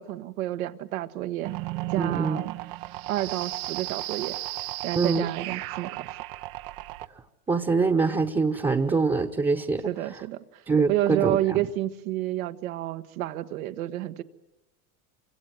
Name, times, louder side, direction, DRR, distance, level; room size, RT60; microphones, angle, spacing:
voice 1, 0.0-1.5 1.9-2.6 3.1-4.4 4.8-6.0 9.8-10.6 10.9-14.2, right 14 dB, 75° right, 1.5 m, -30 dB
sound 1, 1.4-7.1, right 17 dB, 55° right, 0.9 m, -34 dB
voice 2, 2.0-2.4 4.9-5.3 7.5-9.9 10.7-11.6, right 4 dB, 10° right, 1.1 m, -24 dB
27.5 x 24.5 x 7.7 m
supercardioid pair, 125°, 42 cm